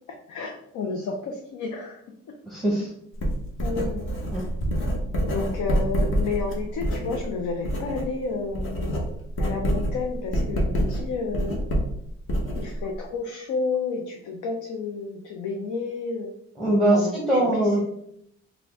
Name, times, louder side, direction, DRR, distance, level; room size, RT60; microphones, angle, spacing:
voice 1, 0.3-2.0 3.6-4.1 5.2-9.0 9.4-11.6 12.5-16.3 16.9-17.8, left 4 dB, 80° left, 2 dB, 0.6 m, -31 dB
voice 2, 2.5-2.9 4.3-4.4 16.6-17.8, right 1 dB, ahead, -4 dB, 1.0 m, -22 dB
Writing, 3.2-8.1 8.4-13.0, equal, 45° left, 1.2 m, -27 dB
3.9 x 2.3 x 3.4 m, 0.72 s
cardioid pair, 90°, 30 cm